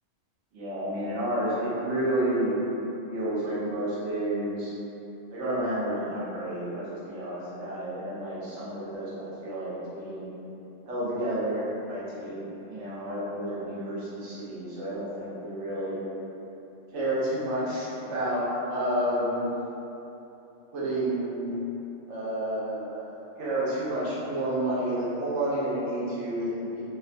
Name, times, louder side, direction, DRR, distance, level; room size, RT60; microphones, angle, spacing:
voice 1, 0.5-2.6 3.1-4.7 5.3-10.3 10.9-16.0 16.9-19.5 20.7-21.6 22.1-23.0 23.4-26.8, right 1 dB, 75° right, -9 dB, 1.0 m, -30 dB
2.8 x 2.1 x 2.5 m, 3.0 s
omnidirectional pair, 1.2 m